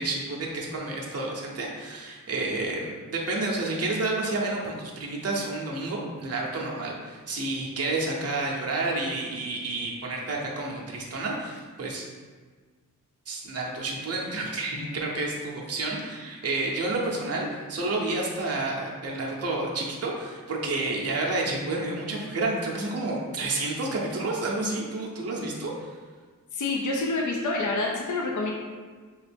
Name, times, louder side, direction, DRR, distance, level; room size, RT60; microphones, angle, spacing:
voice 1, 0.0-12.1 13.3-25.9, right 2 dB, 45° right, -2 dB, 0.6 m, -30 dB
voice 2, 26.5-28.5, left 2 dB, 60° left, -1 dB, 0.5 m, -27 dB
2.9 x 2.4 x 3.3 m, 1.5 s
wide cardioid pair, 65°, 33 cm